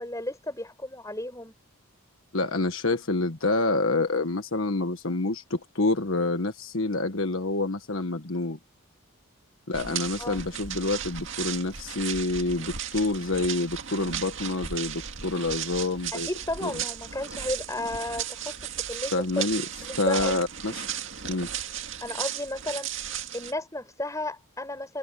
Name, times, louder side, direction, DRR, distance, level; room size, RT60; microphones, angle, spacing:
voice 1, 0.0-1.5 10.2-10.4 16.1-18.6 18.9-19.1 19.8-20.4 22.0-22.9 23.3-25.0, left 1 dB, 15° left, 6.4 m, -33 dB
voice 2, 2.3-8.6 9.7-16.3 16.6-16.7 19.1-19.6 20.0-20.9 21.2-21.5, left 2 dB, 70° left, 1.5 m, -27 dB
sound 1, 9.7-23.5, right 9 dB, 60° right, 2.2 m, -35 dB
head